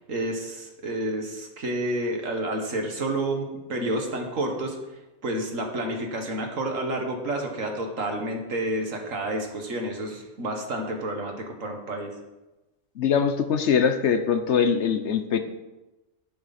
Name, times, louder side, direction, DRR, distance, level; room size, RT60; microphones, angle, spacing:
voice 1, 0.1-4.8 5.2-12.1, right 1 dB, 80° right, 3 dB, 2.0 m, -30 dB
voice 2, 13.0-15.4, left 7 dB, 65° left, 9 dB, 1.0 m, -22 dB
11.5 x 9.7 x 4.2 m, 1.1 s
omnidirectional pair, 1.3 m